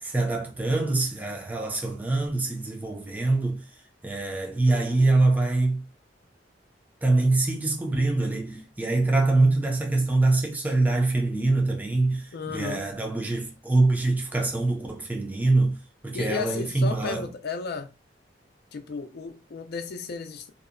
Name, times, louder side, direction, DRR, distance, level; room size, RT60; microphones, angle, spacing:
voice 1, 0.0-3.6 4.0-5.8 7.0-15.8 16.0-17.3, right 2 dB, 10° right, 0.4 m, -24 dB
voice 2, 12.3-12.8 16.1-17.9 18.7-20.5, left 5 dB, 60° left, 0.4 m, -34 dB
2.6 x 2.0 x 2.5 m
head